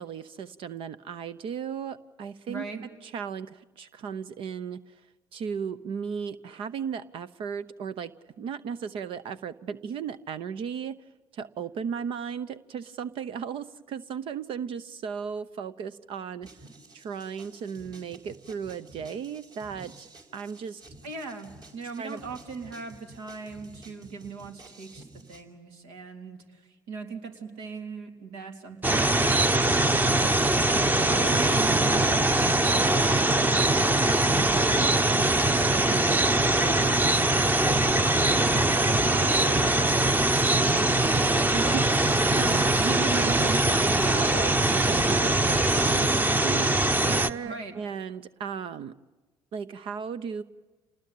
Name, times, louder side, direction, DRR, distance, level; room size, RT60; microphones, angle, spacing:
voice 1, 0.0-11.0 11.3-16.6 16.9-20.8 22.0-22.2 31.2-31.5 34.3-37.4 40.6-48.9 49.5-50.4, right 7 dB, 60° right, 13 dB, 0.8 m, -36 dB
voice 2, 2.5-2.9 21.0-29.4 31.0-33.3 39.1-39.7 47.4-47.8, right 4 dB, 80° right, 4 dB, 3.5 m, -39 dB
sound 1, 16.4-25.4, right 2 dB, 40° right, 4.9 m, -51 dB
sound 2, 28.8-47.3, right 2 dB, 15° right, 1.1 m, -22 dB
27.5 x 20.0 x 8.5 m, 1.2 s
hypercardioid pair, 65°, 10 cm